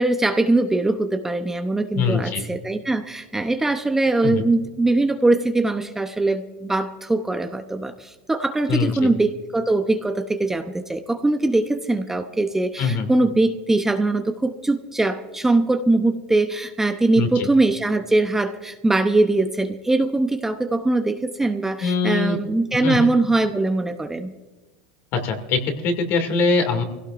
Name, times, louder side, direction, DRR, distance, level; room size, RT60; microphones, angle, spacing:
voice 1, 0.0-24.3, right 2 dB, 10° right, 6 dB, 0.7 m, -21 dB
voice 2, 1.9-2.4 4.2-4.4 8.7-9.1 12.8-13.1 17.1-17.5 21.8-22.4 22.8-23.0 25.1-26.8, left 4 dB, 50° left, 5 dB, 2.5 m, -22 dB
24.0 x 16.5 x 2.6 m, 1.2 s
supercardioid pair, 135°, 5 cm